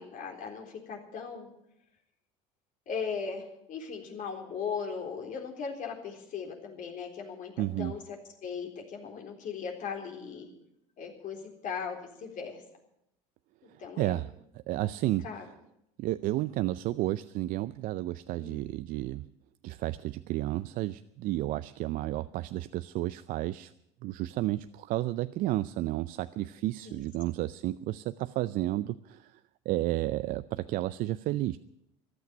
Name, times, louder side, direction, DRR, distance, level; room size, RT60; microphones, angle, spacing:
voice 1, 0.0-1.5 2.9-7.5 7.8-10.5 11.0-12.6 13.8-14.2 14.8-14.9 15.2-15.5 18.4-18.6 26.9-27.0, left 6 dB, 55° left, 2 dB, 3.8 m, -38 dB
voice 2, 7.6-7.9 13.7-15.5 16.0-19.3 19.6-23.7 24.0-29.4 29.7-31.6, right 15 dB, 60° right, 13 dB, 0.5 m, -32 dB
14.5 x 10.5 x 9.3 m, 0.81 s
supercardioid pair, 95°, 17 cm